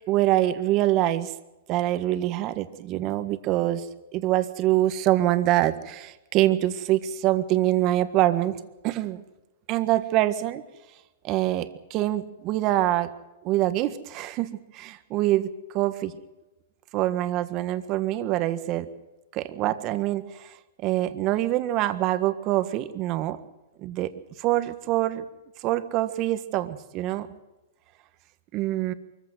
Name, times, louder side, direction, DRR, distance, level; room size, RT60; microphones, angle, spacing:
voice 1, 0.1-1.3 1.7-8.6 8.8-9.2 9.7-10.6 11.2-13.1 13.4-16.1 16.9-18.9 19.3-20.6 20.8-23.4 23.8-24.1 24.4-25.2 25.6-27.3 28.5-28.9, right 14 dB, 35° right, 11 dB, 1.6 m, -25 dB
24.0 x 15.0 x 7.8 m, 1.1 s
hypercardioid pair, 135°, 0 cm